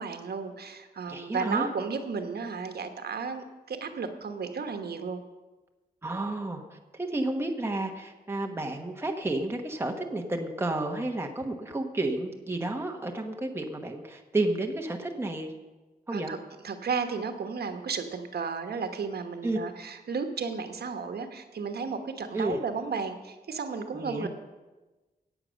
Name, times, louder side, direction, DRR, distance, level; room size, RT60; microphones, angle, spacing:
voice 1, 0.0-5.2 16.1-16.4 16.6-24.3, right 5 dB, 80° right, 6 dB, 1.3 m, -33 dB
voice 2, 1.1-1.7 6.0-6.6 6.9-15.5 16.1-16.3 19.4-19.6 22.3-22.6 23.9-24.3, right 2 dB, 15° right, 3 dB, 1.1 m, -31 dB
17.5 x 7.9 x 6.4 m, 1.2 s
wide cardioid pair, 180°, 16 cm